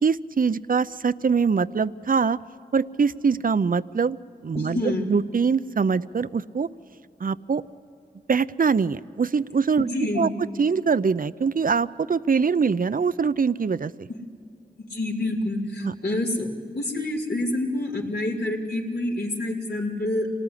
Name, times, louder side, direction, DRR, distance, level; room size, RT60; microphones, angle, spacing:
voice 1, 0.0-2.4 2.7-4.2 4.4-6.7 7.2-7.6 8.3-9.9 10.2-10.3 10.6-14.1 15.8-15.9, right 5 dB, 60° right, 15 dB, 0.6 m, -23 dB
voice 2, 4.6-5.1 9.9-10.3 14.9-20.3, left 1 dB, 80° left, -3 dB, 4.2 m, -27 dB
27.0 x 19.0 x 9.9 m, 2.7 s
wide cardioid pair, 70°, 17 cm